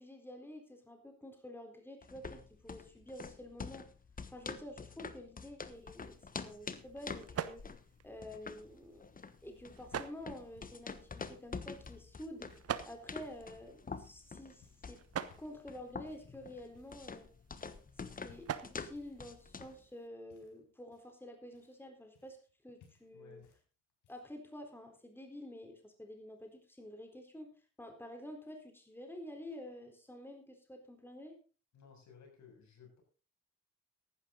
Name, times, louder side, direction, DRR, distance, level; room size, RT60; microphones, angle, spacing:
voice 1, 0.0-3.9 4.3-7.6 8.0-9.0 9.4-12.5 12.9-15.0 15.4-17.3 18.2-22.4 22.6-23.4 24.1-31.4, left 1 dB, 5° left, 4 dB, 4.0 m, -49 dB
sound 1, 2.0-19.8, left 5 dB, 30° left, 1.2 m, -47 dB
sound 2, 5.7-20.1, right 9 dB, 50° right, 1.1 m, -47 dB
sound 3, 9.3-12.8 13.2-13.5 13.9-14.3 14.6-14.9 15.3-15.6 16.0-16.3 16.7-17.2 17.6-17.8 18.2-18.6 18.9-20.0 20.3-22.5 22.8-23.6 23.9-24.4 25.3-25.4, left 7 dB, 85° left, 4.6 m, -65 dB
voice 2, 23.1-23.5 31.7-33.0, left 6 dB, 65° left, 2 dB, 7.1 m, -58 dB
14.5 x 12.0 x 4.0 m, 0.36 s
cardioid pair, 90°, 30 cm